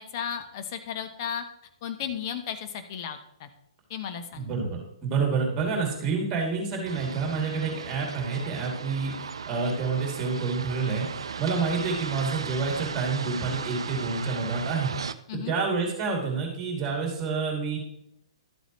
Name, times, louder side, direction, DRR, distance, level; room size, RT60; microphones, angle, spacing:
voice 1, 0.0-1.4 1.8-3.5 3.9-4.5 15.3-15.5, left 8 dB, 40° left, 7 dB, 1.0 m, -34 dB
voice 2, 4.3-14.9 15.3-17.8, right 4 dB, 20° right, 1 dB, 2.8 m, -28 dB
sound 1, 6.9-15.1, right 6 dB, 60° right, 0.5 m, -36 dB
12.0 x 8.0 x 3.2 m, 0.77 s
figure-of-eight pair, 120°, 3 cm